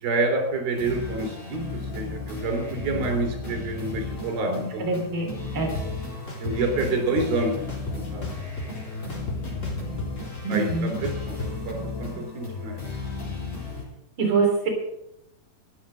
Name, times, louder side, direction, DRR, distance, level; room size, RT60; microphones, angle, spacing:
voice 1, 0.0-1.7 1.9-4.9 6.4-7.5 8.1-8.3 10.5-10.7 11.0-12.8, right 3 dB, 90° right, 2 dB, 5.2 m, -27 dB
sound 1, 0.7-13.8, left 3 dB, 45° left, 7.0 m, -34 dB
voice 2, 4.5-5.7 10.4-11.0 14.2-14.7, right 4 dB, 35° right, 0 dB, 4.0 m, -25 dB
sound 2, 5.7-5.8 6.3-7.3 7.7-8.8 9.1-11.5, left 2 dB, 20° left, 3.0 m, -33 dB
14.5 x 9.5 x 6.4 m, 0.83 s
omnidirectional pair, 4.1 m